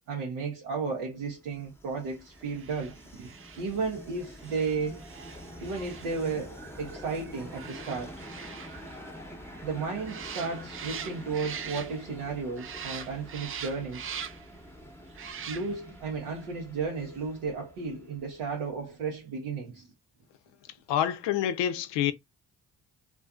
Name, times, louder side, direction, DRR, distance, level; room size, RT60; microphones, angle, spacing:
voice 1, 0.1-3.3 3.6-5.1 5.6-8.2 9.6-14.1 15.5-19.9, right 4 dB, 85° right, 0.7 m, -34 dB
Train, 1.2-18.9, equal, 5° left, 0.7 m, -47 dB
sound 1, 2.5-12.3 12.6-14.6 15.1-16.0 16.3-16.4, right 7 dB, 30° right, 0.4 m, -43 dB
voice 2, 20.9-22.1, left 10 dB, 70° left, 0.5 m, -27 dB
2.5 x 2.3 x 2.3 m
hypercardioid pair, 45°, 45 cm